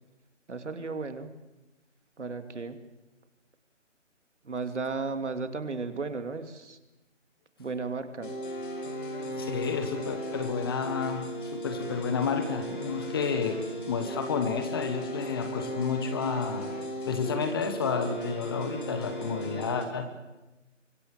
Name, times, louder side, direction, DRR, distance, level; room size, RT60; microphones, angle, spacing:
voice 1, 0.5-1.3 2.2-2.8 4.4-6.8 7.6-8.3, right 4 dB, 65° right, 8 dB, 2.9 m, -34 dB
sound 1, 8.2-19.9, right 1 dB, 40° left, 4.6 m, -36 dB
voice 2, 9.3-13.6 13.9-16.7 17.0-20.1, left 6 dB, 20° left, 8 dB, 1.4 m, -31 dB
26.5 x 24.5 x 7.6 m, 1.0 s
figure-of-eight pair, 160°, 37 cm